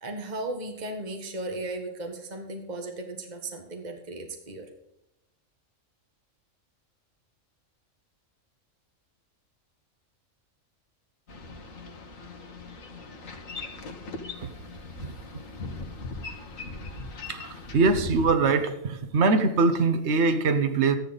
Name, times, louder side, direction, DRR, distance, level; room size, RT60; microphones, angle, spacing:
voice 1, 0.0-4.7, right 2 dB, 35° right, 3 dB, 1.7 m, -36 dB
Boat Water vehicle, 11.3-18.4, left 3 dB, 80° left, 1.9 m, -39 dB
voice 2, 17.3-21.0, right 4 dB, 60° right, 7 dB, 1.4 m, -23 dB
13.0 x 10.5 x 4.1 m, 0.82 s
omnidirectional pair, 1.4 m